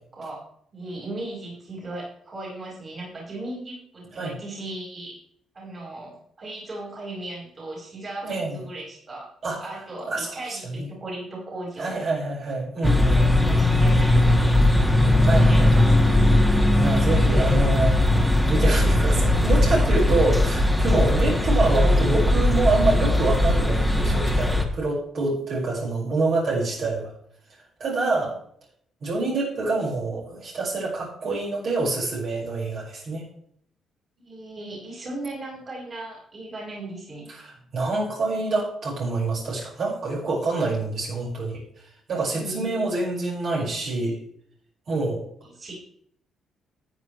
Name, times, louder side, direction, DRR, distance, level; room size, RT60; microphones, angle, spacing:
voice 1, 0.7-5.2 5.5-9.3 9.6-12.0 13.0-15.9 21.1-21.4 34.2-37.3 42.3-42.8 43.1-43.3 45.4-45.8, right 2 dB, 40° right, -3 dB, 5.2 m, -37 dB
voice 2, 8.2-8.6 9.4-9.6 10.0-10.9 11.8-13.2 15.3-15.7 16.8-18.0 18.5-27.1 27.8-28.3 29.0-33.2 37.3-41.6 42.1-44.2 44.9-45.3, right 3 dB, 60° right, -4 dB, 5.5 m, -26 dB
sound 1, 12.8-24.7, left 1 dB, 5° right, 1.8 m, -19 dB
13.5 x 9.2 x 3.2 m, 0.65 s
cardioid pair, 90°, 0 cm